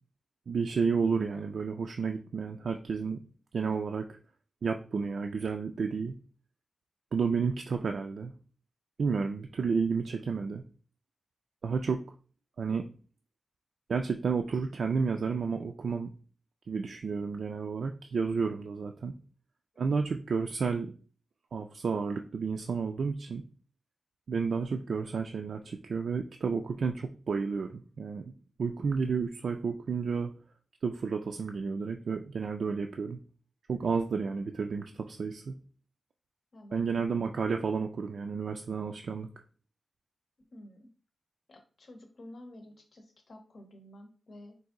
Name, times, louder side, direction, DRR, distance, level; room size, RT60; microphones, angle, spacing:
voice 1, 0.5-3.2 3.5-4.2 4.6-6.1 7.1-8.3 9.0-10.6 11.6-12.0 12.6-12.9 13.9-16.1 16.7-19.1 19.8-20.9 21.5-23.4 24.3-28.2 28.6-30.3 30.8-33.2 33.7-35.5 36.7-39.3, right 5 dB, 70° right, 4 dB, 0.3 m, -31 dB
voice 2, 19.7-20.2 36.5-36.9 40.5-40.9 41.5-44.6, left 1 dB, 60° left, 5 dB, 0.8 m, -51 dB
4.0 x 2.6 x 3.7 m, 0.38 s
wide cardioid pair, 100°, 0 cm